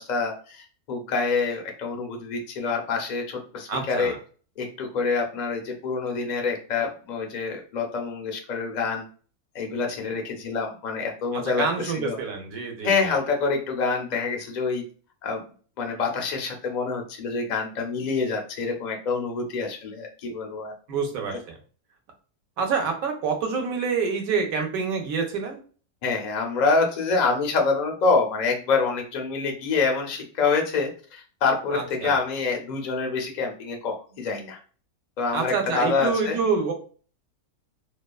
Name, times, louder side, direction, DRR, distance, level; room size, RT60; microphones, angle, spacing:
voice 1, 0.0-4.1 4.6-9.0 9.5-12.2 12.8-14.8 15.2-15.4 15.8-20.7 21.3-21.4 26.0-34.6 35.2-36.4, left 4 dB, 65° left, 2 dB, 0.4 m, -26 dB
voice 2, 3.7-4.2 11.3-13.2 20.9-21.5 22.6-25.6 31.7-32.2 35.3-36.7, right 5 dB, 70° right, 3 dB, 1.1 m, -27 dB
2.7 x 2.2 x 2.3 m, 0.39 s
omnidirectional pair, 1.6 m